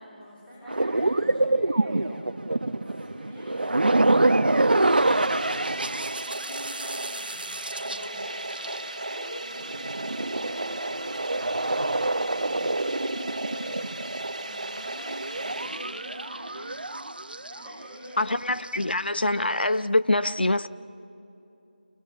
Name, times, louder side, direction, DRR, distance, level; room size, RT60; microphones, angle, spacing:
voice 1, 0.0-2.1 2.5-13.9 14.4-16.7 17.5-18.3 18.6-18.8, equal, 5° left, 6.8 m, -44 dB
sound 1, 0.7-9.1 9.6-18.3 18.5-19.0, right 2 dB, 70° right, 0.9 m, -26 dB
sound 2, 4.5-16.4, right 2 dB, 45° right, 1.6 m, -36 dB
voice 2, 18.2-20.7, left 2 dB, 85° left, 0.9 m, -24 dB
28.5 x 23.5 x 8.4 m
figure-of-eight pair, 175°, 5 cm